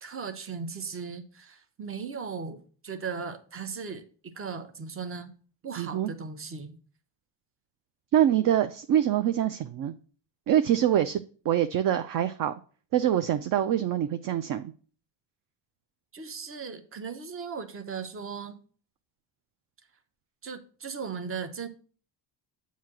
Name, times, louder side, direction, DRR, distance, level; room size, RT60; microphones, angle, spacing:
voice 1, 0.0-5.3 5.6-6.8 16.1-18.6 20.4-21.7, right 5 dB, 30° right, 0.8 m, -37 dB
voice 2, 5.8-6.1 8.1-9.9 10.5-11.2 11.5-12.5 12.9-14.7, right 11 dB, 45° right, 0.4 m, -25 dB
7.3 x 2.8 x 5.9 m
cardioid pair, 100°, 48 cm